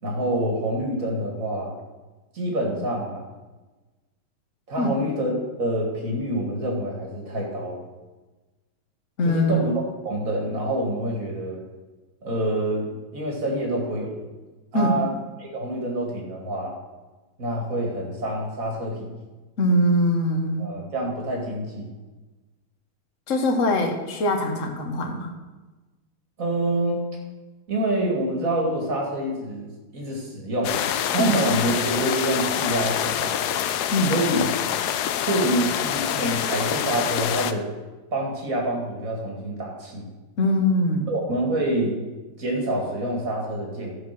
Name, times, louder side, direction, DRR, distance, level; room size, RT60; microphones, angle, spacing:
voice 1, 0.0-1.8 2.3-3.3 4.7-7.8 9.2-9.7 10.0-11.6 12.2-14.2 14.7-15.1 15.4-16.8 17.4-19.0 20.6-21.9 26.4-27.0 27.7-30.8 31.1-33.6 34.1-34.4 35.2-37.7 38.1-40.0 41.1-42.0 42.4-43.9, right 1 dB, 40° right, -1 dB, 2.7 m, -26 dB
voice 2, 9.2-9.5 14.7-14.9 19.6-20.7 23.3-25.3 31.2-31.3 33.9-34.1 40.4-41.1, left 1 dB, 40° left, 3 dB, 1.5 m, -22 dB
sound 1, 30.6-37.5, left 10 dB, 75° left, 0.9 m, -26 dB
14.0 x 5.1 x 6.0 m, 1.2 s
omnidirectional pair, 2.3 m